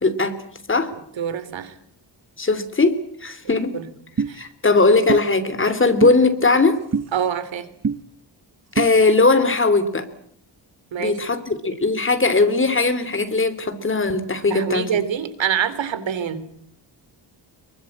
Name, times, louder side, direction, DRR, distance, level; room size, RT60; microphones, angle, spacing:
voice 1, 0.0-0.3 0.7-0.9 2.4-3.8 4.3-6.8 8.7-10.1 11.0-15.0, left 3 dB, 25° left, 11 dB, 3.1 m, -19 dB
voice 2, 1.2-1.7 3.7-3.9 4.3-4.4 7.1-7.7 10.9-11.2 14.5-16.5, right 8 dB, 85° right, 13 dB, 3.1 m, -25 dB
sound 1, 4.2-4.3 5.1-5.2 6.0-6.2 6.9-7.1 7.8-8.0 8.8-8.9, right 5 dB, 35° right, 1.1 m, -22 dB
25.0 x 23.0 x 8.8 m, 0.65 s
wide cardioid pair, 140°, 44 cm